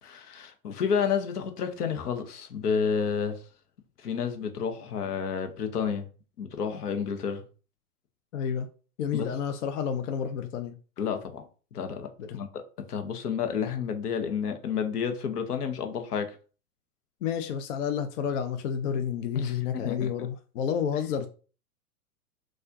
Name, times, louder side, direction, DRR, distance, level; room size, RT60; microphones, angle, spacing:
voice 1, 0.0-3.4 4.0-6.1 6.4-7.4 9.1-9.3 11.0-11.4 11.7-12.6 12.9-16.4 19.4-20.3, left 6 dB, 80° left, 0.8 m, -30 dB
voice 2, 8.3-8.7 9.0-10.8 12.2-12.4 17.2-21.3, left 7 dB, 55° left, 0.5 m, -30 dB
4.2 x 2.4 x 2.5 m
hypercardioid pair, 125°, 46 cm